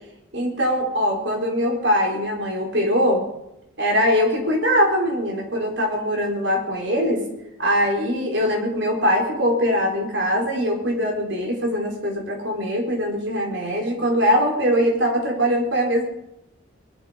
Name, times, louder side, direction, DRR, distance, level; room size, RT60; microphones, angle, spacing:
voice 1, 0.3-3.2 3.8-7.2 7.6-16.0, equal, 60° right, 0 dB, 4.3 m, -22 dB
22.0 x 11.5 x 5.1 m, 0.85 s
head